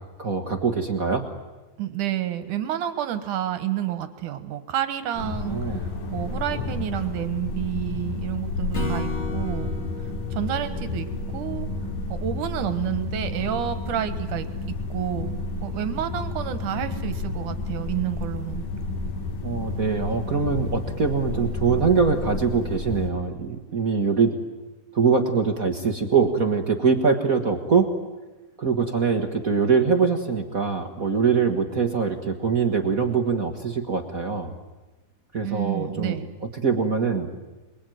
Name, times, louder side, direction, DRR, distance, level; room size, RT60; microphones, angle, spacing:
voice 1, 0.2-1.2 5.5-5.8 19.4-24.4 24.9-27.9 28.6-34.5 35.3-36.2 36.6-37.3, right 5 dB, 45° right, 5 dB, 1.1 m, -23 dB
voice 2, 1.8-9.7 10.3-11.1 11.3-11.7 12.1-14.5 14.9-18.7 35.4-36.3, right 11 dB, 75° right, 10 dB, 2.8 m, -29 dB
sound 1, 5.1-23.1, left 3 dB, 90° left, 3.8 m, -31 dB
Acoustic guitar / Strum, 8.7-12.1, left 2 dB, 25° left, 2.2 m, -35 dB
27.5 x 21.5 x 9.3 m, 1.2 s
omnidirectional pair, 3.7 m